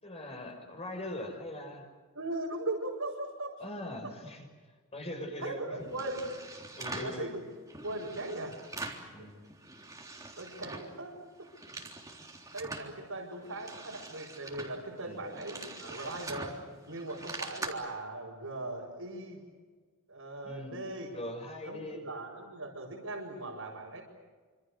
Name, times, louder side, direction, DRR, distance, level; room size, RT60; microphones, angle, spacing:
voice 1, 0.0-1.9 3.6-4.5 4.9-5.6 6.8-7.3 9.1-9.4 15.0-15.3 20.4-20.8 21.1-22.0, left 1 dB, 30° left, 3 dB, 6.2 m, -41 dB
voice 2, 2.1-3.6 5.4-6.3 7.0-7.4 7.8-8.5 10.4-11.1 11.4-11.5 12.5-16.6 16.9-19.4 20.1-21.1 21.6-24.0, right 2 dB, 80° right, -6 dB, 5.9 m, -39 dB
sound 1, 5.8-7.2 7.7-9.1 9.4-11.0 11.3-12.9 13.4-17.7, right 2 dB, 15° right, 3.6 m, -43 dB
27.5 x 27.0 x 6.6 m, 1.4 s
head